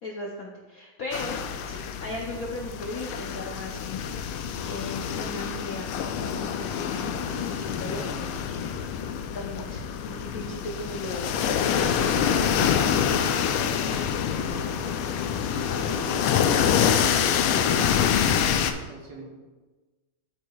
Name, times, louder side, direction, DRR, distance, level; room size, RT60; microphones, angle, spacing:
voice 1, 0.0-5.9 6.2-8.7 9.0-11.3 15.7-16.0, left 2 dB, 65° left, -1 dB, 0.8 m, -37 dB
sound 1, 1.1-18.7, left 8 dB, 85° left, 1.5 m, -26 dB
voice 2, 11.8-16.6 17.3-19.3, right 1 dB, 60° right, -3 dB, 1.9 m, -42 dB
12.0 x 4.7 x 2.3 m, 1.2 s
omnidirectional pair, 2.3 m